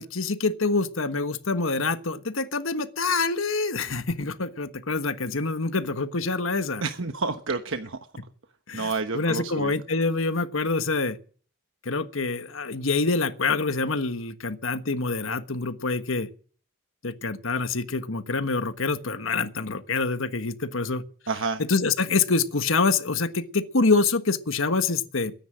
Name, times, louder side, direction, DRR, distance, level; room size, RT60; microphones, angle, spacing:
voice 1, 0.0-6.8 8.7-11.2 11.8-16.3 17.0-21.0 21.6-25.3, left 3 dB, 65° left, 1.4 m, -26 dB
voice 2, 6.8-8.0 8.7-9.7 21.3-21.6, right 4 dB, 65° right, 1.2 m, -29 dB
22.0 x 10.5 x 6.3 m
head